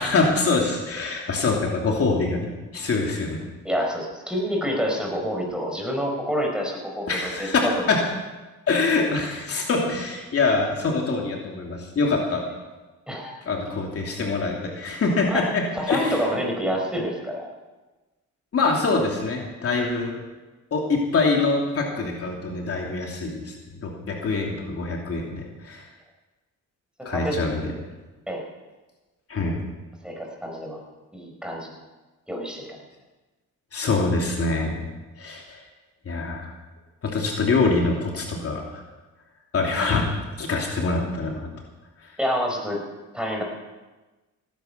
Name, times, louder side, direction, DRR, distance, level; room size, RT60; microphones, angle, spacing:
voice 1, 0.0-3.4 7.1-7.6 7.9-8.0 8.7-12.4 13.4-16.2 18.5-20.1 20.7-25.9 27.0-27.7 29.3-29.6 33.7-34.8 35.2-35.6 36.0-36.5 37.0-38.8 39.5-40.1 40.4-41.5 42.0-42.1, left 3 dB, 50° left, 0 dB, 3.0 m, -24 dB
voice 2, 3.6-7.5 13.1-13.4 15.3-15.4 15.7-17.5 27.1-27.4 28.3-28.4 30.0-30.8 31.1-31.7 32.3-32.8 42.2-42.8 43.1-43.4, equal, 5° right, 0 dB, 4.9 m, -27 dB
17.0 x 10.5 x 6.9 m, 1.2 s
cardioid pair, 90°, 30 cm